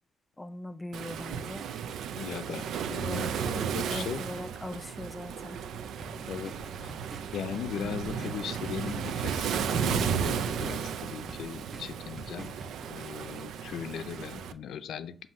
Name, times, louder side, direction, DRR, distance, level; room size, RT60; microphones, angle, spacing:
voice 1, 0.4-1.7 3.0-3.3 3.8-5.6, left 2 dB, 10° left, 0.4 m, -40 dB
Waves surf, 0.9-14.5, right 7 dB, 80° right, 0.5 m, -34 dB
voice 2, 2.1-4.2 6.3-6.5 6.8-6.9 7.3-12.5 12.9-15.3, left 8 dB, 75° left, 0.5 m, -38 dB
sound 1, 6.0-13.0, right 1 dB, 15° right, 0.7 m, -48 dB
7.5 x 2.8 x 5.3 m
cardioid pair, 110°, 0 cm